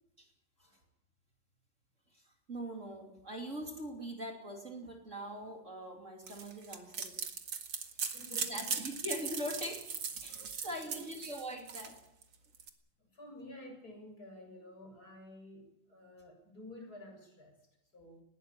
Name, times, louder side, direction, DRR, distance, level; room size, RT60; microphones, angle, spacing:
voice 1, 2.1-7.2 8.0-9.9 10.2-12.0, equal, 35° right, 2 dB, 3.3 m, -42 dB
sound 1, 6.3-12.7, right 6 dB, 80° right, 2.8 m, -39 dB
voice 2, 8.1-8.8 10.5-11.2 13.0-17.5 17.9-18.2, left 1 dB, 45° left, 2 dB, 8.0 m, -51 dB
20.0 x 17.0 x 9.0 m, 0.80 s
omnidirectional pair, 2.2 m